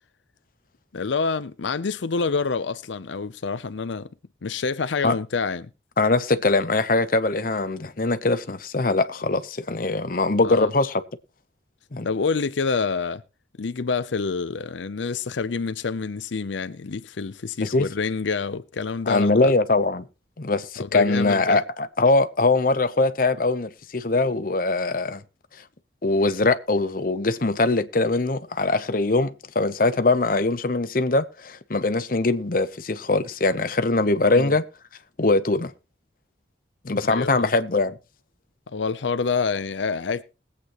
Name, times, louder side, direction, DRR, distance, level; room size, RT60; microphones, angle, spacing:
voice 1, 0.9-4.1 4.4-5.7 10.4-10.7 12.0-13.2 13.6-19.5 20.8-21.6 34.3-34.5 37.1-37.5 38.7-40.2, left 4 dB, 80° left, 0.6 m, -27 dB
voice 2, 6.0-11.0 11.9-12.1 17.6-17.9 19.1-20.1 20.4-25.2 26.0-34.6 35.2-35.7 36.8-38.0, left 3 dB, 50° left, 0.8 m, -22 dB
21.0 x 8.4 x 3.0 m
head